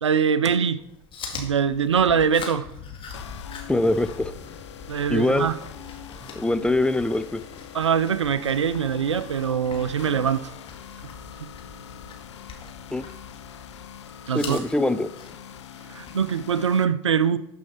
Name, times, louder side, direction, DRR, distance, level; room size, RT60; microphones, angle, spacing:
voice 1, 0.0-0.8 1.3-2.7 4.9-5.5 7.7-10.5 14.3-14.6 15.9-17.4, right 7 dB, 90° right, 16 dB, 0.4 m, -23 dB
Chewing mastication, 0.8-16.7, left 5 dB, 35° left, 2.0 m, -44 dB
sound 1, 2.6-13.9, left 5 dB, 50° left, 1.6 m, -46 dB
sound 2, 3.1-16.8, left 9 dB, 80° left, 0.6 m, -43 dB
voice 2, 3.7-4.3 5.1-5.5 6.3-7.4 12.9-13.1 14.3-15.1, left 2 dB, 5° left, 11 dB, 0.5 m, -23 dB
12.0 x 5.6 x 4.3 m, 0.81 s
hypercardioid pair, 75°, 15 cm